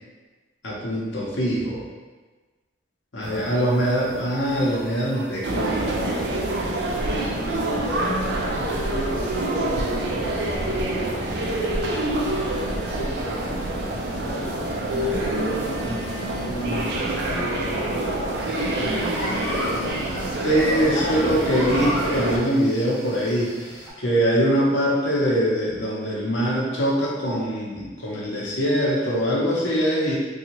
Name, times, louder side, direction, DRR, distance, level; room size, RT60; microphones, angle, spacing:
voice 1, 0.6-1.8 3.1-5.9 20.4-23.5 24.0-30.2, equal, 80° left, -5 dB, 0.8 m, -23 dB
voice 2, 3.1-4.0 6.6-12.1 12.5-16.1 16.4-18.2 18.6-20.3 20.9-21.4, equal, 50° left, -7 dB, 0.4 m, -34 dB
sound 1, 3.2-6.3 6.6-7.4 7.8-19.9, equal, 35° right, 0.7 m, -40 dB
sound 2, 5.4-22.4, right 1 dB, 60° right, 0.4 m, -26 dB
sound 3, 18.4-23.9, left 1 dB, 5° right, 1.3 m, -35 dB
2.7 x 2.3 x 2.9 m, 1.3 s
head